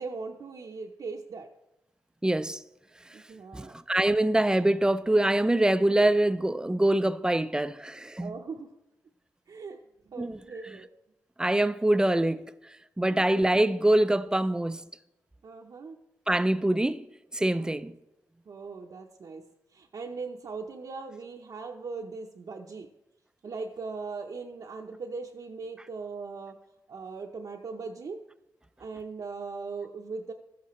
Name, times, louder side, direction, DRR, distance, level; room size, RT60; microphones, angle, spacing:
voice 1, 0.0-1.5 3.1-3.7 8.2-8.7 9.5-9.8 10.1-10.9 13.1-13.5 15.4-16.0 17.5-17.7 18.5-19.4 19.7-22.9 23.4-26.6 26.9-28.2 28.8-30.3, right 4 dB, 60° right, 0.7 m, -39 dB
voice 2, 2.2-2.6 3.1-3.2 3.5-8.4 10.2-10.8 11.4-12.5 13.0-14.8 16.3-18.0, right 1 dB, 10° right, 0.4 m, -25 dB
13.5 x 8.6 x 3.1 m
cardioid pair, 60°, 7 cm